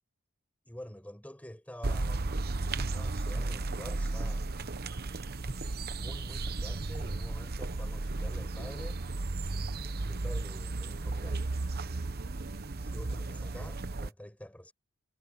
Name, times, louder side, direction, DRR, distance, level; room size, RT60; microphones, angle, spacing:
voice 1, 0.6-2.6 2.9-4.5 5.9-9.0 10.1-11.4 12.8-14.7, equal, 5° left, 5.2 m, -47 dB
sound 1, 1.8-14.1, right 2 dB, 45° right, 0.9 m, -34 dB
head